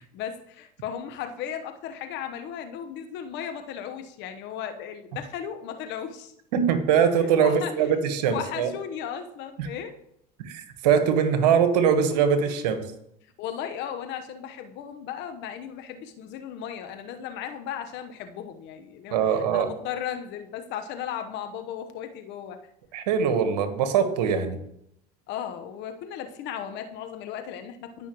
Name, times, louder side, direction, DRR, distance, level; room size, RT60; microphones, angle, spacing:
voice 1, 0.0-6.3 7.4-7.7 8.3-9.9 13.4-22.6 25.3-28.1, left 9 dB, 60° left, 7 dB, 1.1 m, -36 dB
voice 2, 6.5-8.7 9.6-9.7 10.4-12.8 19.1-19.7 22.9-24.6, right 7 dB, 75° right, 8 dB, 1.3 m, -22 dB
16.0 x 5.6 x 3.1 m, 0.77 s
hypercardioid pair, 85°, 21 cm